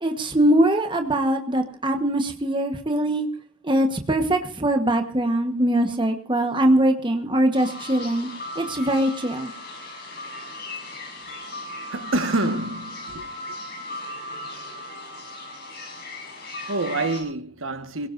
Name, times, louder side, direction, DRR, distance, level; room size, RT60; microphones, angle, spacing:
voice 1, 0.0-3.3 3.6-8.3 8.5-9.5, right 1 dB, 20° right, 1.2 m, -22 dB
sound 1, 7.5-17.2, left 1 dB, 50° left, 6.1 m, -37 dB
voice 2, 11.9-13.3 16.7-18.1, right 2 dB, 65° right, 1.5 m, -27 dB
24.5 x 17.0 x 2.6 m
head